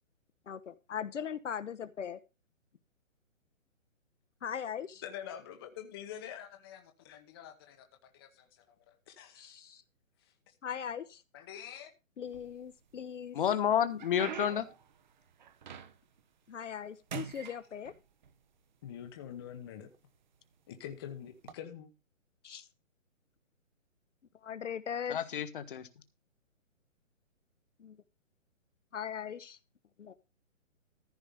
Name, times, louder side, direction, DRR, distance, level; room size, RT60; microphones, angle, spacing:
voice 1, 0.5-2.2 4.4-5.0 9.4-9.8 10.6-11.2 12.2-13.4 16.5-17.9 22.4-22.7 24.4-25.2 27.8-28.0 28.9-29.6 30.0-30.1, left 8 dB, 65° left, 1.1 m, -39 dB
voice 2, 5.0-9.5 10.2-10.3 11.3-11.9 18.8-19.9 20.7-21.9, left 9 dB, 20° left, 0.9 m, -46 dB
sound 1, 12.2-13.0 13.5-16.2 16.6-16.8 17.1-18.3 19.1-19.2 19.9-20.2 21.3-21.5, right 8 dB, 35° right, 1.0 m, -45 dB
voice 3, 13.3-14.6 25.1-25.9, left 9 dB, 40° left, 1.4 m, -30 dB
14.5 x 5.0 x 6.6 m
hypercardioid pair, 165°, 40 cm